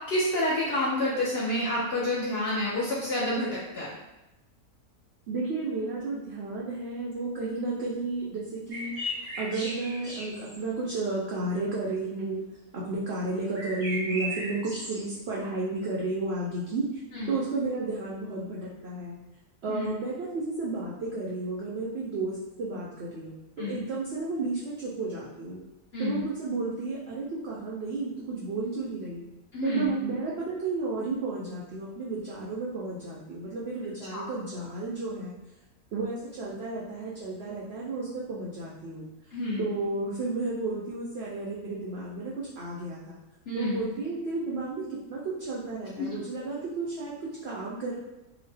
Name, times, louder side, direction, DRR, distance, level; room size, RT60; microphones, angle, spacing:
voice 1, 0.1-3.9 17.1-17.4 19.7-19.9 23.6-23.8 25.9-26.2 29.5-29.9 34.1-34.3 39.3-39.8 43.5-43.8 46.0-46.1, left 1 dB, 60° left, -7 dB, 0.6 m, -29 dB
voice 2, 5.3-8.9 9.4-12.5 12.7-17.0 17.3-19.2 19.6-25.6 26.0-29.2 29.6-35.3 35.9-39.1 39.6-43.2 43.5-47.9, right 3 dB, 75° right, -5 dB, 0.6 m, -32 dB
sound 1, 8.7-10.6 13.5-15.0, equal, 35° right, 0.6 m, -36 dB
2.9 x 2.0 x 3.2 m, 1.0 s
omnidirectional pair, 1.6 m